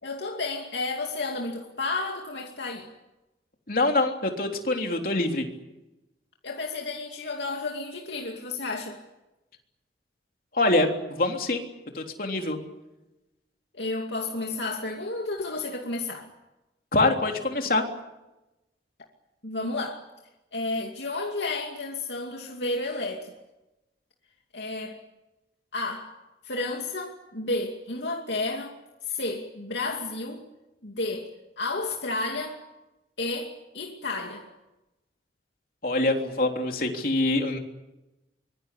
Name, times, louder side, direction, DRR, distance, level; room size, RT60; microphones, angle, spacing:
voice 1, 0.0-2.9 6.4-9.0 13.7-16.3 19.4-20.1 20.5-23.3 24.5-25.0 25.7-26.2 26.4-28.8 29.0-30.4 30.8-32.6 33.2-34.4, left 2 dB, 80° left, 2.6 m, -32 dB
voice 2, 3.7-5.5 10.5-11.6 11.9-12.6 16.9-17.8 35.8-37.6, left 2 dB, 55° left, 3.5 m, -25 dB
25.0 x 23.0 x 8.5 m
head